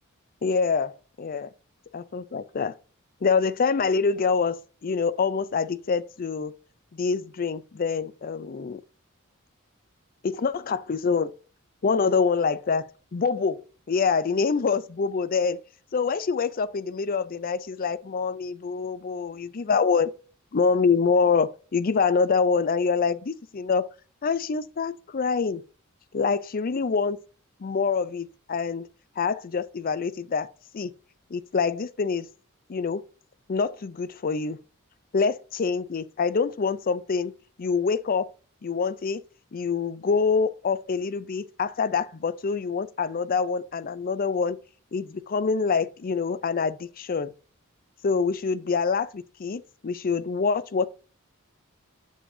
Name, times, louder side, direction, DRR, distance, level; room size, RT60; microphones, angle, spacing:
voice 1, 0.4-1.5 1.9-2.8 3.2-4.6 4.8-6.5 6.9-8.8 10.2-11.3 11.8-12.8 13.1-15.6 15.9-20.1 20.5-23.9 24.2-25.6 26.1-27.2 27.6-28.9 29.2-30.9 31.3-32.3 32.7-33.0 33.5-34.6 35.1-37.3 37.6-38.3 38.6-39.2 39.5-44.6 44.9-47.3 48.0-50.9, left 5 dB, 45° left, 0.5 m, -25 dB
7.3 x 7.2 x 2.7 m
head